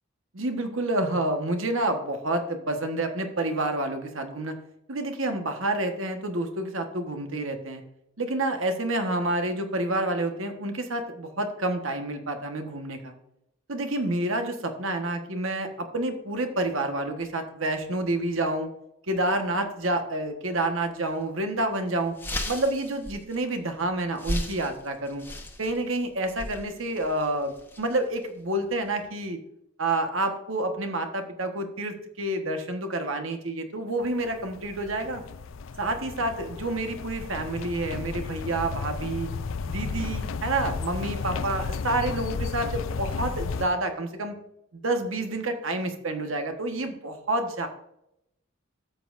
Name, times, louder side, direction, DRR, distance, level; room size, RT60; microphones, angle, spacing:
voice 1, 0.3-4.6 4.9-7.8 8.2-13.1 13.7-18.7 19.1-22.2 22.4-25.2 25.6-29.4 29.8-35.2 35.8-39.3 39.7-44.4 44.7-47.7, right 2 dB, 75° right, 6 dB, 1.4 m, -29 dB
sound 1, 21.1-21.2 21.6-21.7 22.0-29.0, left 1 dB, 10° left, 1.1 m, -37 dB
sound 2, 34.0-43.7, left 5 dB, 70° left, 0.5 m, -33 dB
13.0 x 7.5 x 2.6 m, 0.82 s
head